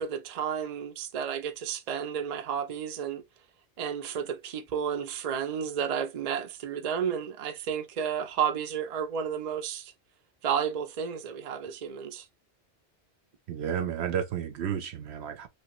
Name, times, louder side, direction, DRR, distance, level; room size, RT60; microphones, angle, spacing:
voice 1, 0.0-3.2 3.8-9.9 10.4-12.3, right 7 dB, 45° right, 0.5 m, -32 dB
voice 2, 13.5-15.5, right 8 dB, 70° right, 0.9 m, -32 dB
3.2 x 2.8 x 3.0 m
omnidirectional pair, 1.2 m